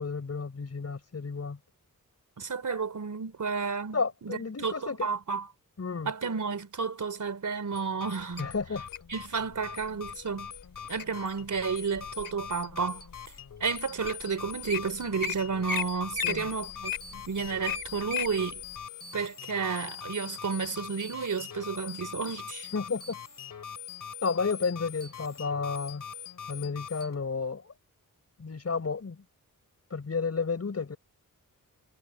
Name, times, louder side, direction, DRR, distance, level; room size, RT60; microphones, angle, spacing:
voice 1, 0.0-1.6 3.9-5.1 5.8-6.1 8.4-8.9 16.2-16.5 22.7-23.2 24.2-26.0 26.5-27.7 28.4-29.2 29.9-31.0, left 5 dB, 45° left, 5.6 m, -32 dB
voice 2, 2.4-5.5 6.0-8.5 9.1-10.5 10.9-13.0 13.6-18.6 19.1-22.7, right 5 dB, 60° right, 3.6 m, -32 dB
sound 1, 7.7-27.1, left 8 dB, 65° left, 3.2 m, -43 dB
Wild animals, 8.4-9.1 9.8-10.1 10.6-11.0 11.6-12.5 13.1-13.2 13.8-13.9 14.0-14.2 14.5-14.8 15.2-15.3 15.7-15.8 16.1-18.3 18.8-18.9, left 7 dB, 85° left, 5.2 m, -33 dB
wide cardioid pair, 150°, 34 cm